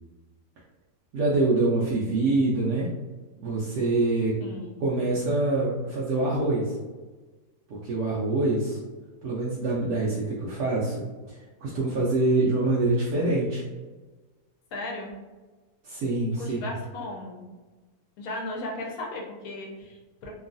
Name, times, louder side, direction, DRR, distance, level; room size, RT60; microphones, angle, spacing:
voice 1, 1.1-2.9 3.4-4.4 4.8-6.8 7.7-8.8 9.2-13.6 15.8-16.6, right 2 dB, 75° right, -6 dB, 1.0 m, -25 dB
voice 2, 4.4-4.7 14.7-15.1 16.4-17.5 18.2-20.3, left 2 dB, 70° left, -1 dB, 1.0 m, -36 dB
3.0 x 2.3 x 2.5 m, 1.3 s
omnidirectional pair, 1.8 m